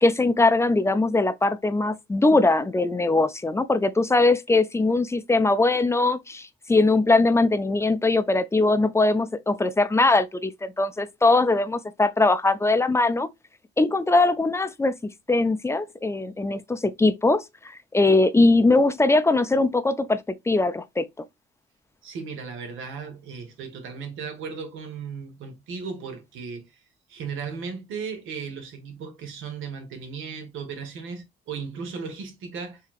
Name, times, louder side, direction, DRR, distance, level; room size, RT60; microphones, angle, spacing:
voice 1, 0.0-13.3 13.8-15.0 15.3-17.4 17.9-21.1, left 2 dB, 15° left, 0.4 m, -21 dB
voice 2, 22.0-26.8 27.1-32.8, right 5 dB, 85° right, 1.2 m, -36 dB
4.1 x 2.8 x 2.4 m
cardioid pair, 90°, 20 cm